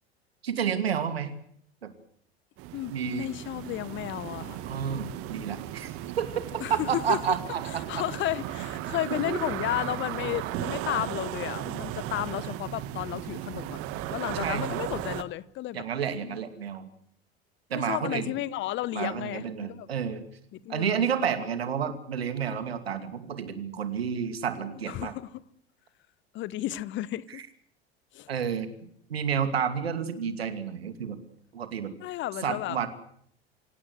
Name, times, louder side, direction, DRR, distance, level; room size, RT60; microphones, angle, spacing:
voice 1, 0.4-1.3 1.8-1.9 2.9-3.3 4.7-6.4 6.7-8.0 9.3-9.4 14.4-14.8 15.7-16.8 17.7-18.3 18.9-20.2 20.7-25.1 27.3-27.4 28.3-28.7 29.1-31.2 31.5-31.9 32.4-32.9, right 7 dB, 70° right, 2.6 m, -30 dB
sound 1, 2.6-15.2, right 13 dB, 45° right, 1.6 m, -36 dB
voice 2, 2.7-4.7 6.6-7.2 7.9-13.8 14.1-15.8 16.2-16.4 17.7-19.9 20.5-21.1 24.8-25.3 26.3-27.4 28.1-28.3 32.0-32.8, left 15 dB, 35° left, 1.1 m, -33 dB
26.0 x 17.0 x 8.1 m
figure-of-eight pair, 75°, 31 cm